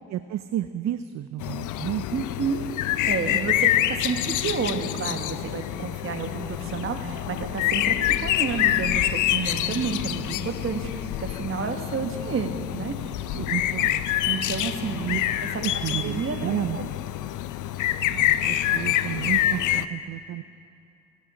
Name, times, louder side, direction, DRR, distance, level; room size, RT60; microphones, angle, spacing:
voice 1, 0.1-2.0 13.3-14.0 14.8-15.2 15.6-16.8 18.1-20.4, right 12 dB, 60° right, 11 dB, 0.5 m, -31 dB
sound 1, 1.4-19.9, left 13 dB, 80° left, 0.6 m, -26 dB
voice 2, 2.1-2.7 3.1-13.5 14.3-15.2 16.0-16.9, right 5 dB, 45° right, 6 dB, 1.5 m, -30 dB
23.5 x 11.0 x 5.0 m, 2.6 s
cardioid pair, 90°, 30 cm